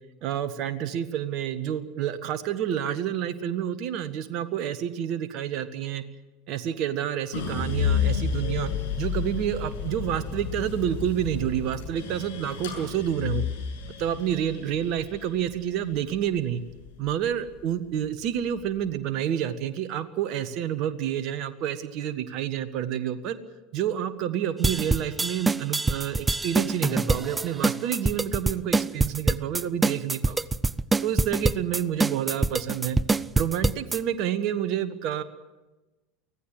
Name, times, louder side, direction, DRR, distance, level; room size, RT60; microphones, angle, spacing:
voice 1, 0.2-6.0 6.5-8.7 9.0-13.4 14.0-16.6 17.0-23.4 23.7-30.4 31.0-33.0 33.4-35.2, right 10 dB, 50° right, 11 dB, 1.4 m, -29 dB
sound 1, 7.3-17.5 18.0-18.8, left 7 dB, 65° left, 7.1 m, -31 dB
sound 2, 24.6-34.0, right 3 dB, 15° right, 0.6 m, -24 dB
24.5 x 16.5 x 7.9 m, 1.1 s
figure-of-eight pair, 75°, 0 cm